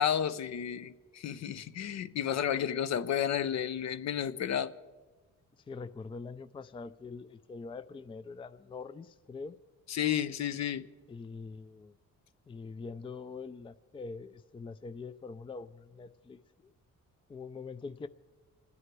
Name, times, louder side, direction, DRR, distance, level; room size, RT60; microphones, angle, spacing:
voice 1, 0.0-4.7 9.9-10.9, left 9 dB, 60° left, 0.7 m, -31 dB
voice 2, 5.6-9.6 11.1-12.0 12.5-16.7 17.3-18.1, left 4 dB, 15° left, 0.4 m, -44 dB
25.0 x 9.7 x 4.7 m
cardioid pair, 90°, 30 cm